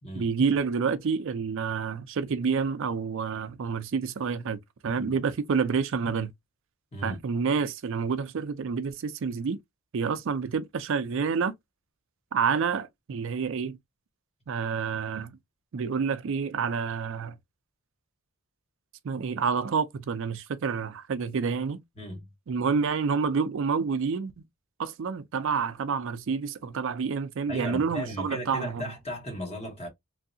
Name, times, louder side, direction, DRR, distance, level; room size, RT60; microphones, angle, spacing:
voice 1, 0.2-6.3 7.0-9.6 9.9-11.5 12.3-13.8 14.5-15.3 15.7-17.4 19.0-21.8 22.5-24.3 24.8-28.8, right 5 dB, 60° right, 0.4 m, -28 dB
voice 2, 6.9-7.2 21.9-22.3 27.5-29.9, equal, 30° left, 1.3 m, -36 dB
3.1 x 2.7 x 2.6 m
head